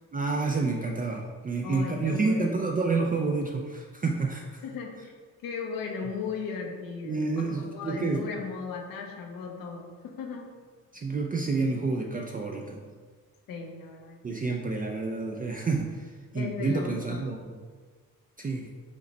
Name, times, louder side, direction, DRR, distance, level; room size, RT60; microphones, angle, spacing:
voice 1, 0.1-4.6 7.0-8.2 10.9-12.8 14.2-17.6 18.4-18.7, right 3 dB, 25° right, 0 dB, 0.4 m, -29 dB
voice 2, 1.6-2.6 4.6-5.1 5.4-10.5 13.5-14.4 16.3-17.2, left 5 dB, 80° left, 2 dB, 0.8 m, -37 dB
5.1 x 2.1 x 3.9 m, 1.5 s
cardioid pair, 75°, 34 cm